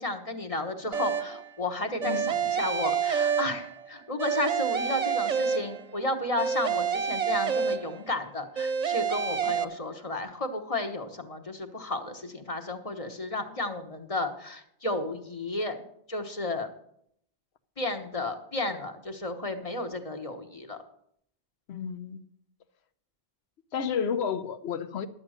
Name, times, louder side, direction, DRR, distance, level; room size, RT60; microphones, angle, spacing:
voice 1, 0.0-15.8 16.1-16.7 17.8-20.8, left 2 dB, 35° left, 5 dB, 1.1 m, -33 dB
sound 1, 0.9-1.5 2.0-3.9 4.2-6.0 6.4-8.2 8.6-9.6, right 7 dB, 45° right, 0.7 m, -28 dB
voice 2, 21.7-22.2 23.7-25.1, left 7 dB, 85° left, 12 dB, 1.0 m, -31 dB
11.5 x 7.8 x 6.3 m, 0.71 s
omnidirectional pair, 1.1 m